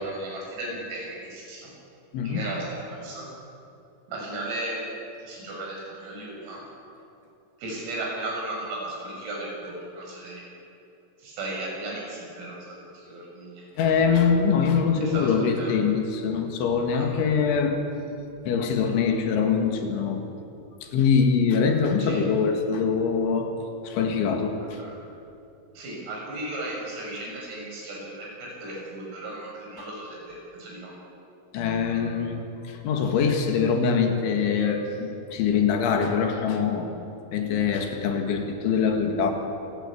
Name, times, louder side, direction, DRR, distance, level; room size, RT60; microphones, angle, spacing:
voice 1, 0.0-1.7 2.3-3.2 4.1-4.9 5.2-6.6 7.6-10.4 11.2-12.8 13.1-13.6 15.0-15.7 16.9-17.1 22.0-22.2 24.8-24.9 25.8-30.9, right 1 dB, 80° right, -2 dB, 9.3 m, -35 dB
voice 2, 13.8-17.8 18.5-20.2 20.8-23.5 23.8-24.8 29.8-29.9 31.5-36.9 37.3-39.3, left 6 dB, 70° left, 4 dB, 4.1 m, -23 dB
27.5 x 16.5 x 8.6 m, 2.7 s
omnidirectional pair, 5.9 m